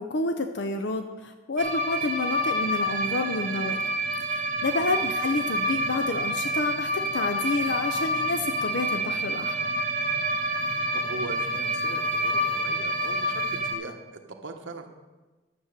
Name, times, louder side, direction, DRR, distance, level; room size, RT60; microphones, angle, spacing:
voice 1, 0.0-3.8 4.3-9.6, left 3 dB, 60° left, 7 dB, 0.6 m, -29 dB
sound 1, 1.6-13.7, right 1 dB, 45° right, 1.1 m, -28 dB
voice 2, 4.6-5.1 10.7-14.9, right 2 dB, 70° right, 3 dB, 1.3 m, -40 dB
12.0 x 7.1 x 6.7 m, 1.2 s
head